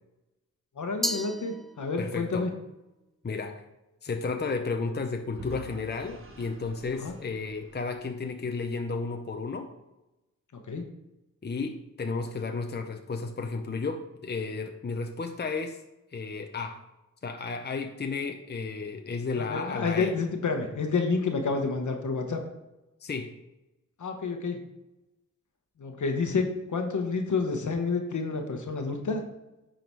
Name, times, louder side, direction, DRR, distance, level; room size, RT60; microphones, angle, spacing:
voice 1, 0.8-2.5 7.0-7.1 10.7-10.8 19.3-22.4 24.0-24.6 25.8-29.2, left 4 dB, 65° left, 4 dB, 1.2 m, -29 dB
Glass, 1.0-2.2, equal, ahead, 0.4 m, -34 dB
voice 2, 2.0-2.5 3.2-3.6 4.0-9.7 11.4-15.8 16.1-16.8 17.2-20.2 23.0-23.3, left 4 dB, 30° left, 5 dB, 0.8 m, -33 dB
Vehicle / Engine, 5.4-8.4, right 2 dB, 40° right, 1.2 m, -47 dB
9.9 x 3.9 x 4.6 m, 0.97 s
cardioid pair, 55°, 32 cm